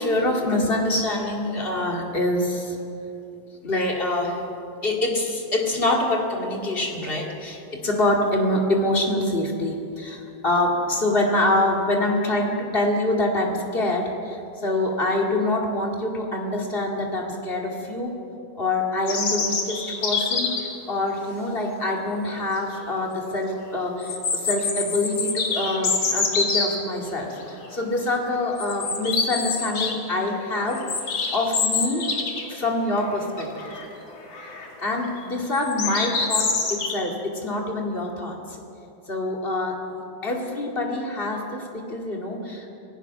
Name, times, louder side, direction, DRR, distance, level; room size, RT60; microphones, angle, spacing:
voice 1, 0.0-2.8 3.6-4.4 4.8-18.2 18.6-30.9 31.3-32.1 32.5-33.7 34.8-38.4 39.1-39.8 40.2-42.7, left 1 dB, 30° left, 1 dB, 2.5 m, -25 dB
sound 1, 19.1-20.8 22.3-22.4 22.8-22.9 24.0-26.7 27.4-27.7 28.0-28.1 28.6-29.9 30.3-32.6 32.9-33.0 33.4-33.8 34.3-34.7 35.5-36.9, left 4 dB, 80° left, 2.9 m, -26 dB
26.5 x 17.0 x 6.0 m, 2.8 s
omnidirectional pair, 2.1 m